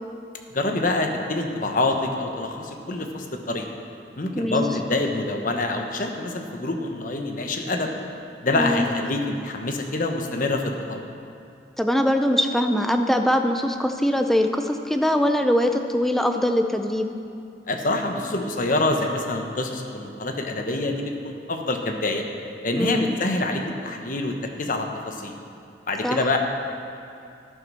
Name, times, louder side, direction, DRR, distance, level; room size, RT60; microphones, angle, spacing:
voice 1, 0.5-3.7 4.2-7.9 8.4-11.1 17.7-22.2 22.6-25.3 25.9-26.4, left 2 dB, 45° left, 3 dB, 1.1 m, -26 dB
voice 2, 8.5-8.9 11.8-17.1 22.7-23.1 26.0-26.2, equal, ahead, 5 dB, 0.6 m, -22 dB
11.5 x 9.5 x 6.2 m, 2.5 s
head